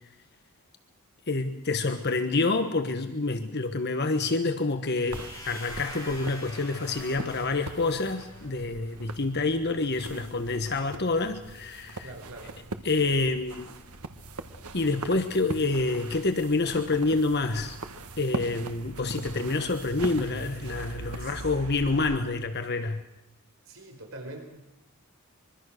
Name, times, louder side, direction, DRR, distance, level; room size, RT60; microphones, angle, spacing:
voice 1, 1.3-12.1 12.8-13.7 14.7-17.8 18.2-23.0, left 3 dB, 50° left, 8 dB, 1.3 m, -27 dB
sound 1, 5.0-8.9, left 1 dB, 15° left, 7.0 m, -45 dB
sound 2, 5.1-22.2, right 2 dB, 85° right, 1.6 m, -41 dB
voice 2, 12.0-12.5 21.2-21.5 23.6-24.5, right 2 dB, 60° right, 3 dB, 4.7 m, -43 dB
24.5 x 23.0 x 6.6 m, 0.84 s
head